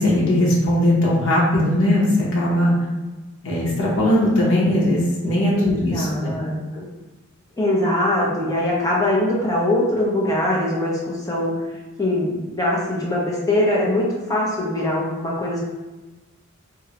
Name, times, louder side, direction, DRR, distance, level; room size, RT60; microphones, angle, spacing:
voice 1, 0.0-2.7 3.4-6.3, left 1 dB, 75° left, -5 dB, 0.8 m, -19 dB
voice 2, 5.5-6.9 7.6-11.6 12.0-15.7, left 1 dB, 15° left, -4 dB, 0.6 m, -22 dB
3.6 x 2.1 x 2.8 m, 1.2 s
head